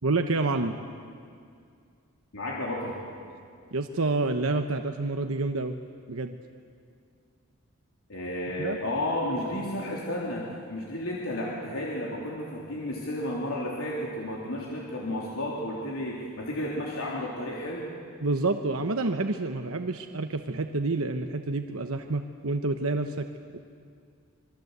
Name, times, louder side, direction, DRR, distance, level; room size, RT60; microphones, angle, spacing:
voice 1, 0.0-0.8 3.7-5.7 6.1-6.4 8.6-8.8 18.2-23.3 23.5-23.6, right 3 dB, 80° right, 6 dB, 1.1 m, -28 dB
voice 2, 2.3-3.0 8.1-17.9, left 1 dB, 80° left, -4 dB, 3.5 m, -32 dB
27.0 x 22.0 x 8.1 m, 2.3 s
head